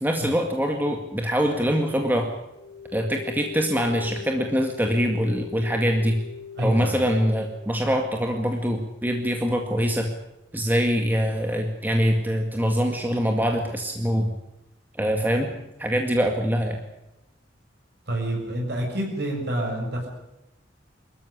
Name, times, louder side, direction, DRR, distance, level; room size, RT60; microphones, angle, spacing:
voice 1, 0.0-2.3 2.9-6.2 6.6-10.1 10.5-14.3 15.0-15.5 15.8-16.8, equal, 10° right, 3 dB, 2.1 m, -24 dB
sound 1, 2.5-7.5, left 7 dB, 45° left, 6.1 m, -39 dB
voice 2, 6.6-7.0 18.1-20.1, right 1 dB, 60° right, 0 dB, 7.0 m, -28 dB
25.0 x 14.0 x 10.0 m, 0.92 s
head